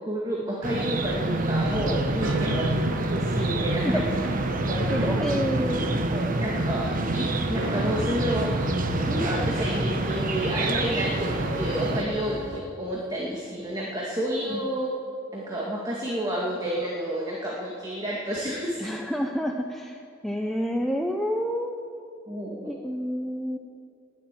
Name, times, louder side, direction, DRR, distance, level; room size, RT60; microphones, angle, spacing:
voice 1, 0.0-2.7 3.1-4.2 4.6-5.2 6.1-8.5 9.0-15.0 15.3-18.9 22.3-22.8, equal, 20° right, -4 dB, 2.0 m, -30 dB
sound 1, 0.6-12.0, right 2 dB, 40° right, 1.0 m, -27 dB
sound 2, 1.6-12.6, right 1 dB, 65° right, 1.4 m, -34 dB
voice 2, 4.9-6.0 14.5-14.7 18.8-21.8 22.7-23.6, equal, ahead, 2 dB, 0.7 m, -29 dB
19.5 x 7.8 x 9.1 m, 2.4 s
head